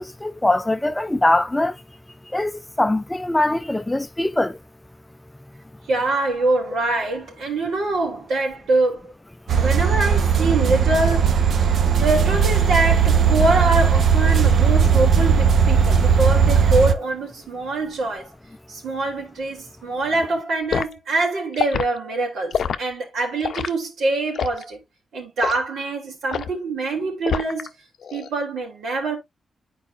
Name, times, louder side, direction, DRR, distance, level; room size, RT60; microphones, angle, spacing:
voice 1, 0.0-1.7 2.3-4.6, left 1 dB, 10° left, 0.4 m, -22 dB
voice 2, 5.9-9.1 9.5-11.7 12.0-18.3 18.7-24.8 25.1-27.7 28.1-29.2, right 2 dB, 85° right, 3.1 m, -24 dB
sound 1, 9.5-16.9, right 6 dB, 65° right, 0.7 m, -17 dB
Liquid, 20.7-20.9 21.5-21.9 22.5-22.8 23.4-23.7 24.3-24.6 25.4-25.6 26.3-26.6 27.3-27.7 28.0-28.3, left 7 dB, 65° left, 0.5 m, -25 dB
11.5 x 4.7 x 2.4 m
wide cardioid pair, 130°, 0 cm